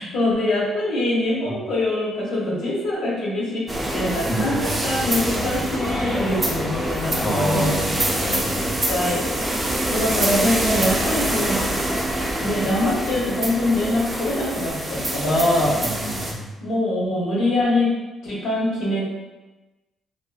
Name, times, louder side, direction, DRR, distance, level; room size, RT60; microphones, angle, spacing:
voice 1, 0.0-3.7 3.9-8.0 8.6-9.2 9.9-11.6 12.4-15.9 16.6-17.9 18.2-19.0, left 1 dB, 85° left, -7 dB, 1.0 m, -23 dB
sound 1, 3.7-16.3, right 1 dB, 25° right, 0.5 m, -25 dB
voice 2, 4.3-4.9 7.2-8.7 15.8-16.5, left 1 dB, 45° left, -6 dB, 0.8 m, -28 dB
2.8 x 2.6 x 2.3 m, 1.1 s
cardioid pair, 90°, 0 cm